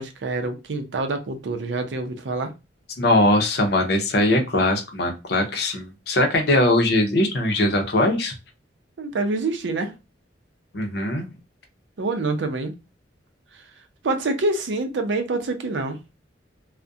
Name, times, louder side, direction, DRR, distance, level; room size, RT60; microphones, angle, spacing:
voice 1, 0.0-2.5 9.0-9.9 12.0-12.7 14.0-16.0, right 2 dB, 80° right, 0.5 m, -26 dB
voice 2, 3.0-8.3 10.7-11.3, left 1 dB, 60° left, 0.6 m, -21 dB
2.3 x 2.1 x 2.6 m
head